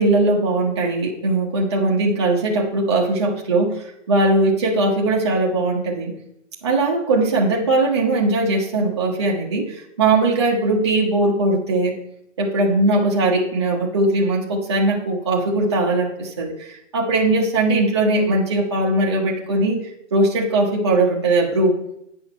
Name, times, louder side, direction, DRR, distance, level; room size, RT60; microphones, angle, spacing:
voice 1, 0.0-6.1 6.6-12.0 12.4-19.8 20.1-21.7, right 2 dB, 20° right, -2 dB, 0.9 m, -20 dB
9.4 x 6.1 x 5.4 m, 0.78 s
hypercardioid pair, 170°, 38 cm